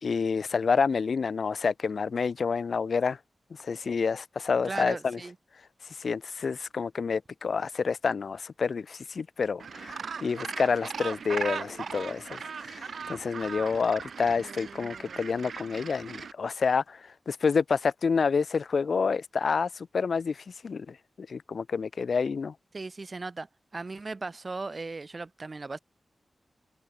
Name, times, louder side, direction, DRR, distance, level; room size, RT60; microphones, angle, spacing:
voice 1, 0.0-3.2 3.6-5.2 6.0-22.5, left 5 dB, 65° left, 0.9 m, -28 dB
voice 2, 4.6-5.3 22.7-23.5 23.7-25.8, right 3 dB, 35° right, 1.0 m, -37 dB
Gull seagull, 9.6-16.3, right 6 dB, 75° right, 1.4 m, -38 dB
wide cardioid pair, 115°, 0 cm